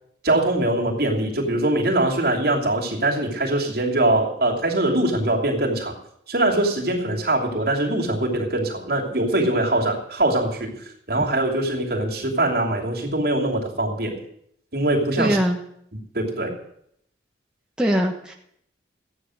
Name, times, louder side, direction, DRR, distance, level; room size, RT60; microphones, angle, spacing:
voice 1, 0.2-5.9 6.3-10.7 11.1-14.2 14.7-15.4 15.9-16.6, right 1 dB, 60° right, 0 dB, 2.8 m, -22 dB
voice 2, 15.2-15.6 17.8-18.3, equal, 5° right, -1 dB, 1.2 m, -21 dB
15.0 x 9.8 x 6.4 m, 0.71 s
head